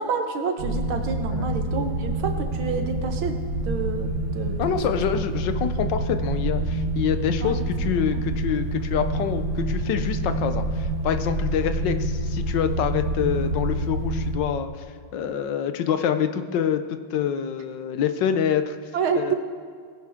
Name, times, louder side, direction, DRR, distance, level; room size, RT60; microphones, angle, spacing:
voice 1, 0.0-3.4 3.6-4.8 7.4-7.6 8.1-8.2 18.9-19.3, right 5 dB, 90° right, 5 dB, 2.0 m, -28 dB
sound 1, 0.6-14.3, right 1 dB, 50° right, 1.8 m, -27 dB
voice 2, 4.6-14.8 15.1-16.8 17.1-18.8 19.1-19.3, left 8 dB, 70° left, 9 dB, 1.3 m, -26 dB
20.0 x 10.5 x 3.6 m, 2.1 s
omnidirectional pair, 2.2 m